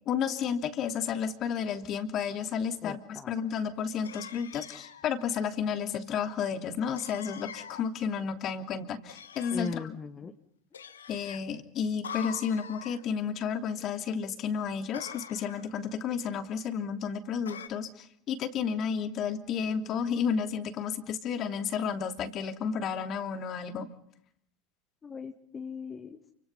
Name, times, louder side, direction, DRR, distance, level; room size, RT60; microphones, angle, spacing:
voice 1, 0.1-10.0 11.1-23.9, left 7 dB, 45° left, 8 dB, 2.9 m, -32 dB
voice 2, 2.8-3.3 9.5-10.3 25.0-26.2, left 5 dB, 25° left, 6 dB, 2.1 m, -39 dB
sound 1, 4.0-5.1 7.0-7.9 9.1-9.8 10.7-11.4 12.0-13.0 14.9-15.7 17.5-17.7, left 8 dB, 85° left, 1.6 m, -44 dB
29.0 x 25.5 x 5.6 m, 0.68 s
hypercardioid pair, 80°, 0 cm